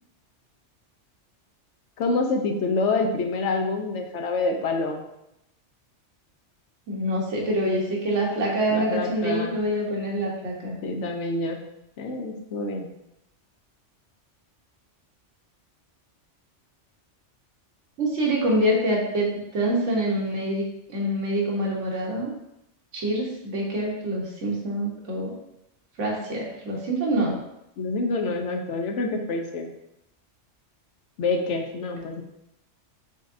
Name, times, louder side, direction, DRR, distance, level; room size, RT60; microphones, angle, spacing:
voice 1, 2.0-5.0 8.7-9.6 10.8-11.6 12.0-12.9 27.8-29.7 31.2-32.2, left 3 dB, 75° left, 4 dB, 1.0 m, -27 dB
voice 2, 6.9-10.8 18.0-22.3 22.9-25.3 26.0-27.3, right 1 dB, 85° right, -2 dB, 1.4 m, -26 dB
5.5 x 3.7 x 2.6 m, 0.84 s
omnidirectional pair, 1.2 m